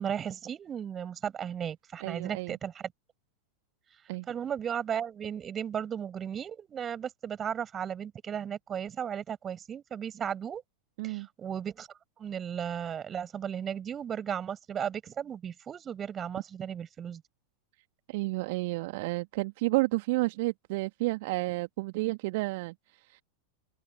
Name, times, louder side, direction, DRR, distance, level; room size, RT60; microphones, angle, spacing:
voice 1, 0.0-2.7 4.3-10.6 11.0-11.9 12.2-17.2, right 8 dB, 25° right, 7.3 m, -35 dB
voice 2, 2.0-2.6 4.1-4.3 11.0-11.3 18.1-23.2, right 22 dB, 50° right, 1.7 m, -31 dB
open air
figure-of-eight pair, 90°, 0 cm